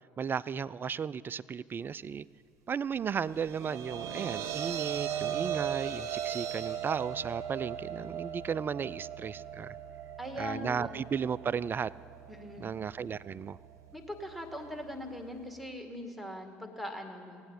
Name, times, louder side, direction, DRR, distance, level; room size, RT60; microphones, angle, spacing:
voice 1, 0.2-2.3 2.7-9.8 10.4-11.9 12.6-13.6, right 7 dB, 30° right, 20 dB, 0.3 m, -35 dB
sound 1, 3.1-15.5, right 9 dB, 55° right, 1.2 m, -39 dB
voice 2, 10.2-10.9 12.3-12.7 13.9-17.4, left 1 dB, ahead, 3 dB, 2.2 m, -41 dB
17.5 x 8.8 x 8.3 m, 2.4 s
figure-of-eight pair, 60°, 7 cm